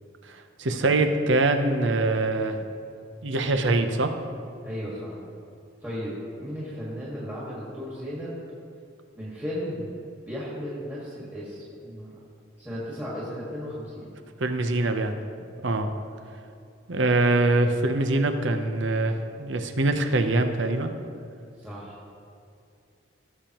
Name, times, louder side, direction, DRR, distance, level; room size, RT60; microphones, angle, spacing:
voice 1, 0.3-2.6 3.2-4.1 14.4-15.2 15.6-15.9 16.9-20.9, right 2 dB, 75° right, 7 dB, 0.8 m, -24 dB
voice 2, 4.6-5.1 5.8-6.1 6.4-8.3 9.1-10.0 10.2-12.2 12.6-14.1 21.6-22.0, equal, 10° right, -8 dB, 1.8 m, -35 dB
17.0 x 7.1 x 3.0 m, 2.5 s
head